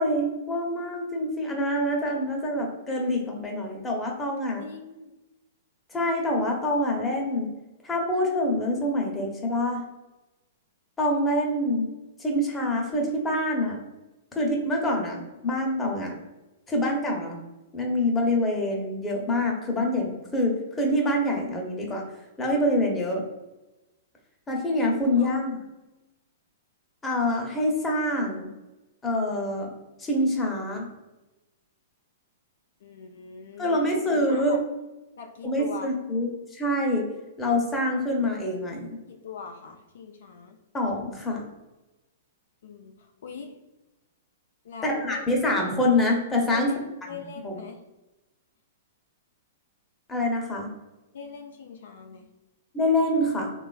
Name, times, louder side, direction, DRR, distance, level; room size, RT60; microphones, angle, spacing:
voice 1, 0.0-4.6 5.9-7.5 7.8-9.8 11.0-11.9 12.2-13.8 14.4-15.2 15.4-16.2 16.7-17.4 17.7-22.0 22.4-23.2 24.5-25.6 27.0-28.5 29.0-29.7 30.0-30.9 33.6-34.6 35.4-37.1 37.4-39.0 40.7-41.4 44.8-46.8 47.4-47.6 50.1-50.7 52.7-53.5, left 1 dB, 15° left, 0 dB, 0.7 m, -26 dB
voice 2, 4.6-5.1 25.2-25.4 32.8-34.6 35.2-35.9 39.1-40.6 42.6-43.5 44.6-45.2 46.5-47.8 51.1-52.3, left 6 dB, 70° left, 3 dB, 0.4 m, -41 dB
3.1 x 2.3 x 2.3 m, 1.0 s
hypercardioid pair, 120°, 0 cm